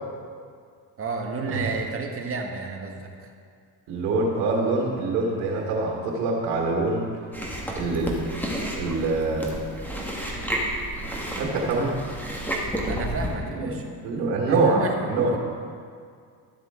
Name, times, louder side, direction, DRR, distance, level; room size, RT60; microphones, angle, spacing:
voice 1, 1.0-3.1 12.8-13.8 14.4-15.4, right 4 dB, 35° right, 2 dB, 1.4 m, -31 dB
voice 2, 3.9-7.1 7.8-8.2 8.8-9.5 11.4-12.0 13.5-13.7 14.0-15.3, right 3 dB, 90° right, -2 dB, 1.7 m, -24 dB
Chewing mastication, 7.3-13.3, equal, 5° left, 1.6 m, -31 dB
13.0 x 7.6 x 3.7 m, 2.2 s
cardioid pair, 105°, 41 cm